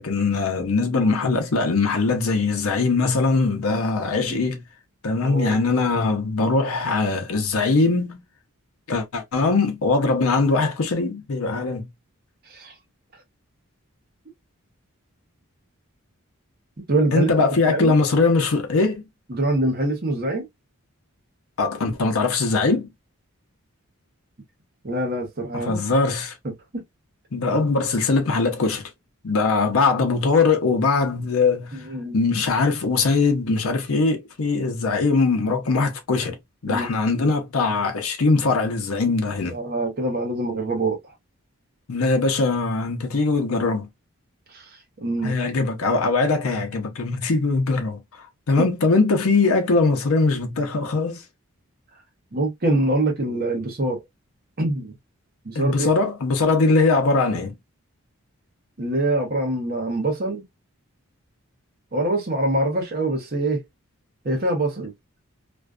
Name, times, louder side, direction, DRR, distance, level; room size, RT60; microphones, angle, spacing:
voice 1, 0.0-4.6 5.0-8.2 8.9-11.9 17.1-19.0 21.6-22.9 25.5-26.3 27.3-28.9 29.2-31.8 32.1-36.4 36.6-39.6 41.9-43.9 45.2-51.2 55.5-57.6, left 3 dB, 75° left, 0.6 m, -21 dB
voice 2, 0.9-1.4 4.1-4.5 5.2-5.6 12.5-12.7 16.9-17.9 19.3-20.5 24.8-25.8 31.8-32.2 36.7-36.9 39.4-41.1 44.5-45.4 48.6-48.7 52.3-54.0 54.6-54.9 55.4-55.9 58.8-60.4 61.9-63.6 64.2-64.9, right 2 dB, 45° right, 0.8 m, -25 dB
2.5 x 2.3 x 2.3 m
head